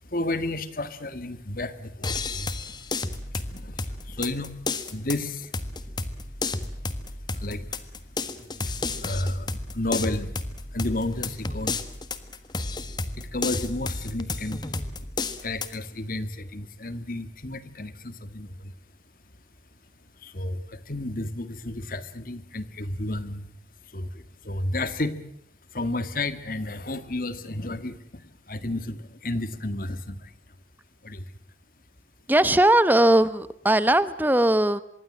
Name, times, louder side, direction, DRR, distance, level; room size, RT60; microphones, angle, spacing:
voice 1, 0.0-2.5 3.3-5.8 7.0-7.9 8.3-11.7 13.2-15.1 15.4-18.7 20.2-23.5 23.8-25.2 25.7-30.3 31.0-31.3, left 2 dB, 50° left, 12 dB, 1.9 m, -32 dB
sound 1, 2.0-15.8, left 3 dB, 25° left, 1.5 m, -32 dB
voice 2, 32.3-34.8, right 1 dB, 10° right, 15 dB, 0.9 m, -19 dB
25.5 x 22.5 x 7.6 m, 0.68 s
head